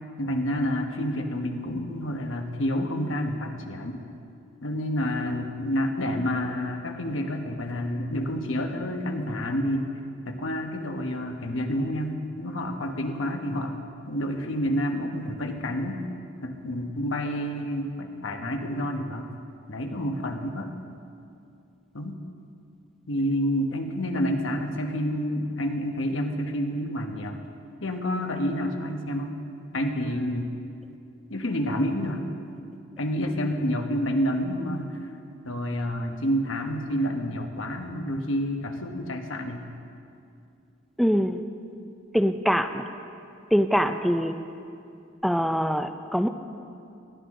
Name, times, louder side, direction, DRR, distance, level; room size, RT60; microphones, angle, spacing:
voice 1, 0.2-4.0 4.6-9.9 10.3-13.8 14.1-16.1 16.4-19.3 19.7-20.7 21.9-22.2 23.1-27.4 27.8-29.4 29.7-30.5 31.3-32.2 33.0-35.0 35.4-39.6, equal, 90° left, 4 dB, 1.3 m, -29 dB
voice 2, 41.0-41.4 42.1-42.8 43.5-44.4 45.2-46.3, equal, ahead, 7 dB, 0.4 m, -23 dB
19.5 x 14.0 x 3.8 m, 2.5 s
head